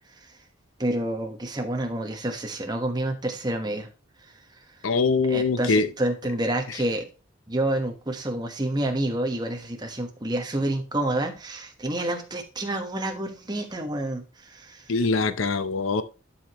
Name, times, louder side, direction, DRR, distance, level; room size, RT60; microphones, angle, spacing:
voice 1, 0.8-3.9 5.1-7.1 7.5-14.9, right 1 dB, 20° right, 1.2 m, -28 dB
voice 2, 4.8-5.9 14.9-16.0, left 4 dB, 75° left, 0.6 m, -23 dB
11.5 x 4.9 x 3.0 m
head